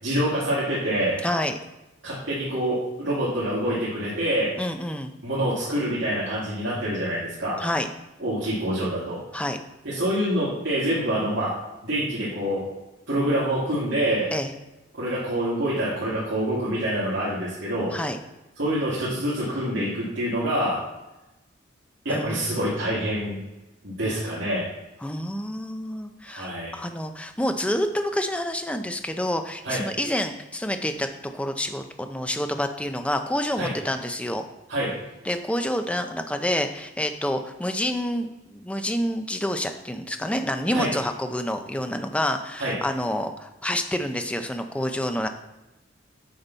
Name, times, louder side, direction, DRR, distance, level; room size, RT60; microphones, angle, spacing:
voice 1, 0.0-1.2 2.0-4.5 5.2-7.6 8.2-9.2 9.8-11.5 11.8-12.6 13.1-14.3 14.9-17.9 18.6-20.8 22.0-23.4 23.8-24.6 26.3-26.7 29.6-29.8 33.6-33.7 34.7-34.9 40.7-40.9 42.6-42.7, right 1 dB, 70° right, -9 dB, 2.4 m, -26 dB
voice 2, 1.2-1.6 4.6-5.1 7.6-7.9 9.3-9.6 14.3-14.5 17.9-18.2 22.1-22.7 25.0-34.5 35.2-45.3, left 1 dB, 5° left, 6 dB, 0.6 m, -28 dB
8.8 x 5.9 x 4.1 m, 1.0 s
head